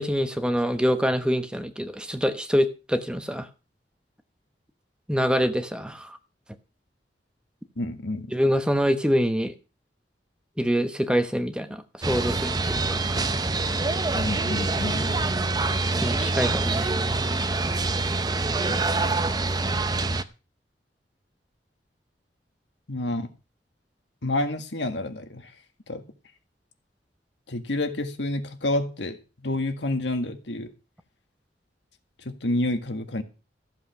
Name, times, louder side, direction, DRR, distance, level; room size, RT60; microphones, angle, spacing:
voice 1, 0.0-3.5 5.1-6.2 8.3-9.5 10.6-13.2 16.0-17.0, equal, 5° right, 1.0 m, -25 dB
voice 2, 7.8-8.3 14.1-15.3 18.7-19.2 22.9-23.3 24.2-25.5 25.9-26.0 27.5-29.2 29.4-30.7 32.3-33.2, left 1 dB, 90° left, 1.8 m, -29 dB
sound 1, 12.0-20.2, right 3 dB, 25° right, 0.7 m, -25 dB
14.0 x 7.5 x 6.0 m
head